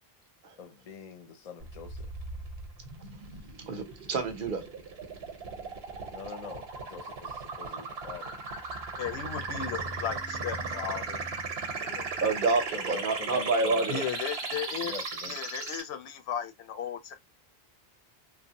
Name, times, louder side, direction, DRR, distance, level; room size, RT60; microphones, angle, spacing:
voice 1, 0.6-2.1 6.1-8.4 12.7-14.0 14.8-15.4, left 5 dB, 45° left, 0.6 m, -44 dB
sound 1, 1.6-15.8, right 4 dB, 80° right, 1.0 m, -37 dB
voice 2, 3.7-4.7 12.2-14.0, right 3 dB, 55° right, 0.8 m, -28 dB
sound 2, 8.6-13.2, left 2 dB, 25° right, 0.4 m, -46 dB
voice 3, 9.0-11.2 11.8-12.1 13.9-14.9 15.3-17.1, left 9 dB, 85° left, 0.8 m, -36 dB
3.1 x 2.0 x 2.8 m
omnidirectional pair, 1.0 m